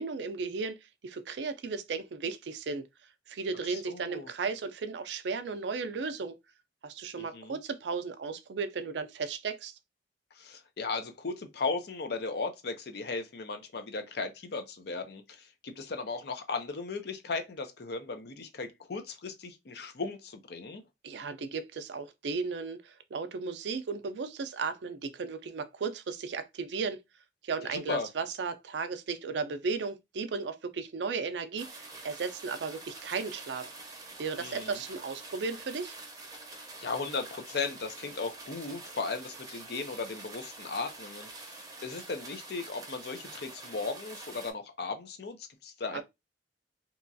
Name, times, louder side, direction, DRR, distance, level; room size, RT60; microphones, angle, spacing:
voice 1, 0.0-2.9 3.3-6.3 6.8-9.7 21.0-27.0 27.4-33.7 34.2-36.0 45.9-46.0, right 4 dB, 75° right, 0.4 m, -35 dB
voice 2, 3.7-4.3 7.2-7.6 10.3-20.8 27.6-28.1 34.4-34.8 36.5-46.0, left 4 dB, 65° left, 0.6 m, -37 dB
sound 1, 31.6-44.5, right 3 dB, 20° right, 0.6 m, -46 dB
2.9 x 2.3 x 2.5 m
head